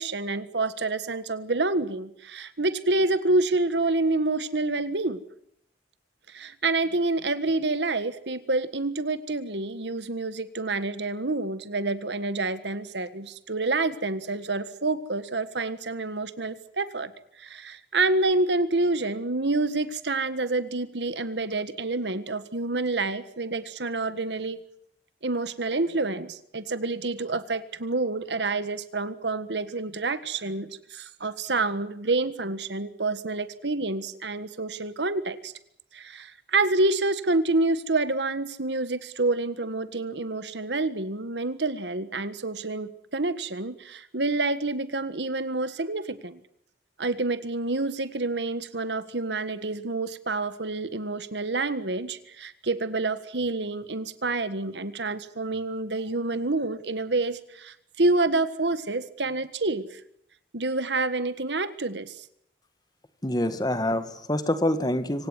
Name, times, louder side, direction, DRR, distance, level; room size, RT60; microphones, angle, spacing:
voice 1, 0.0-5.2 6.3-17.1 17.4-24.6 25.2-35.5 35.9-46.4 47.0-60.0 60.5-62.2, right 2 dB, 80° right, 13 dB, 1.6 m, -28 dB
voice 2, 63.2-65.3, left 1 dB, 25° left, 11 dB, 1.7 m, -26 dB
25.5 x 17.5 x 9.8 m, 0.73 s
head